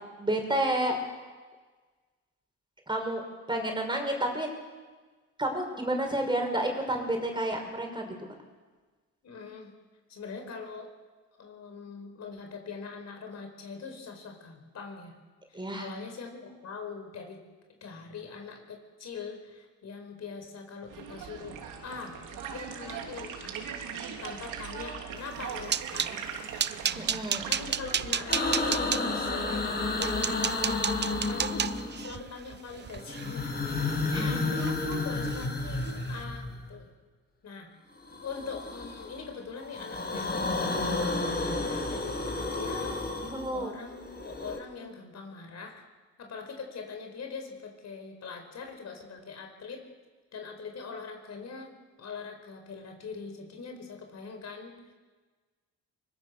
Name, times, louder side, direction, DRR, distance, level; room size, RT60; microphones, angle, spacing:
voice 1, 0.2-1.0 2.9-4.5 5.4-8.1 15.5-15.9 27.0-27.5 34.1-34.6 43.2-43.8, right 1 dB, 15° right, 3 dB, 5.6 m, -30 dB
voice 2, 9.2-9.7 10.1-10.9 11.4-15.1 15.5-17.4 17.8-23.7 24.2-26.3 26.9-27.1 27.5-30.5 30.8-36.8 37.4-37.7 38.2-40.9 41.5-43.0 43.5-45.7 46.2-49.8 50.3-51.7 52.0-54.7, left 5 dB, 60° left, 4 dB, 5.1 m, -42 dB
sound 1, 20.9-28.7, right 7 dB, 90° right, 3.0 m, -40 dB
sound 2, 25.3-26.2 26.6-29.0 29.6-29.7 30.0-34.2 34.6-35.0 35.2-35.5 35.9-36.0, right 8 dB, 35° right, 0.7 m, -32 dB
sound 3, 28.3-32.2 33.0-36.7 38.1-39.2 39.6-44.6, left 3 dB, 30° left, 5.8 m, -31 dB
24.5 x 22.0 x 6.9 m, 1.4 s
cardioid pair, 90°, 30 cm